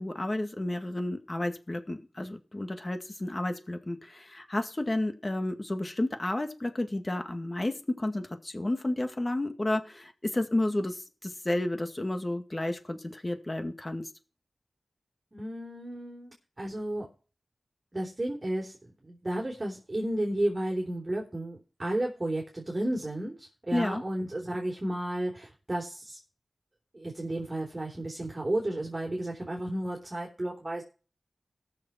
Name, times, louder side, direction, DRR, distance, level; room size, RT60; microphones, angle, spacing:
voice 1, 0.0-14.1 23.7-24.0, left 1 dB, 30° left, 7 dB, 2.1 m, -31 dB
voice 2, 15.3-17.1 17.9-18.8 19.0-26.2 26.9-30.8, right 1 dB, 30° right, 0 dB, 3.7 m, -33 dB
19.5 x 6.6 x 4.4 m, 0.36 s
cardioid pair, 50°, 0 cm